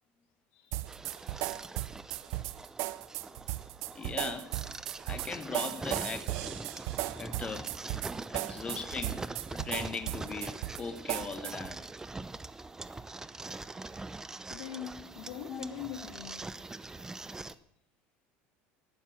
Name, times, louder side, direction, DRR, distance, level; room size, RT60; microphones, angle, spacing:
voice 1, 0.5-1.5 3.3-3.9 8.0-8.2 12.8-13.0 14.5-16.4, left 10 dB, 85° left, 2.7 m, -45 dB
sound 1, 0.7-11.7, right 18 dB, 65° right, 0.7 m, -36 dB
sound 2, 0.9-17.5, right 3 dB, 10° right, 0.7 m, -43 dB
voice 2, 3.9-4.5 5.1-6.6 7.2-7.7 8.3-9.2 9.5-11.8 15.5-15.7, left 5 dB, 20° left, 1.1 m, -39 dB
15.0 x 12.0 x 7.3 m
cardioid pair, 135°, 5 cm